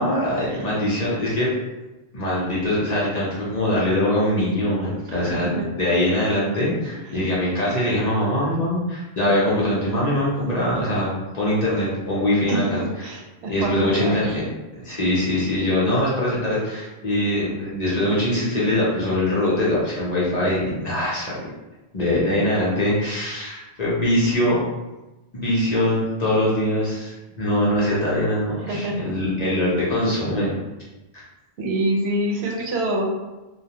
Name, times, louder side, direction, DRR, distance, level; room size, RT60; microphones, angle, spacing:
voice 1, 0.0-1.5 2.1-13.1 13.5-14.4 14.7-21.5 21.9-24.6 25.3-30.6 31.1-31.2, left 1 dB, 45° left, -7 dB, 0.7 m, -22 dB
voice 2, 5.1-5.7 6.9-7.2 12.5-14.4 28.6-29.1 31.6-33.1, right 1 dB, 75° right, -1 dB, 0.8 m, -26 dB
2.3 x 2.1 x 2.7 m, 1.1 s
omnidirectional pair, 1.1 m